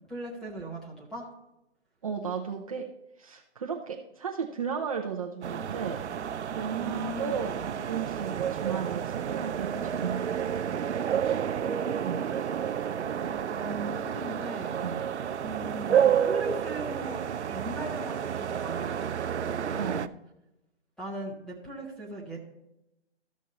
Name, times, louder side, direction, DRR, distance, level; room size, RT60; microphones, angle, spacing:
voice 1, 0.1-1.3 6.8-7.8 11.4-12.5 13.0-15.1 15.4-17.2 17.5-20.1 21.0-22.4, right 1 dB, ahead, -5 dB, 0.9 m, -39 dB
voice 2, 2.0-2.9 3.2-6.0 6.5-7.5 7.9-10.3 12.0-12.2 14.8-15.0 19.8-20.1, right 7 dB, 30° right, 2 dB, 0.6 m, -34 dB
sound 1, 5.4-20.1, right 8 dB, 75° right, 0.6 m, -30 dB
13.5 x 6.3 x 4.0 m, 0.88 s
hypercardioid pair, 155°, 35 cm